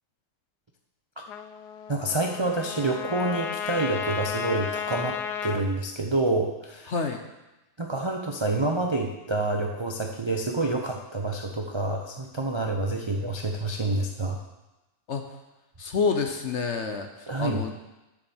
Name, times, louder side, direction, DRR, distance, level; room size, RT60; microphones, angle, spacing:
Trumpet, 1.3-5.6, left 8 dB, 75° left, 1.2 m, -33 dB
voice 1, 1.9-6.9 7.8-14.4 17.3-17.6, right 2 dB, 45° right, 1 dB, 0.3 m, -28 dB
voice 2, 6.9-7.2 15.1-15.2 15.8-17.7, left 5 dB, 55° left, 5 dB, 0.9 m, -28 dB
11.0 x 4.9 x 7.0 m, 1.0 s
omnidirectional pair, 1.8 m